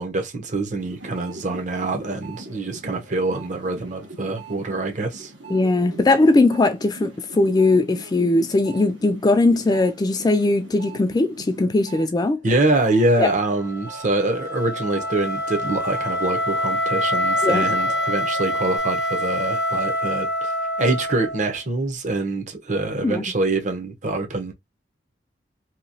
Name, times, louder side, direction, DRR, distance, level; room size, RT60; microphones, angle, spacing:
voice 1, 0.0-5.3 12.4-20.5 20.8-24.5, right 2 dB, 45° right, 0.7 m, -25 dB
sound 1, 0.8-12.1 12.4-18.8, right 1 dB, 85° right, 1.1 m, -41 dB
voice 2, 5.5-12.4 13.2-13.3 17.4-17.7 23.0-23.2, left 2 dB, 20° left, 0.3 m, -19 dB
Wind instrument woodwind instrument, 13.6-21.6, equal, 60° left, 0.6 m, -25 dB
2.9 x 2.8 x 2.7 m
head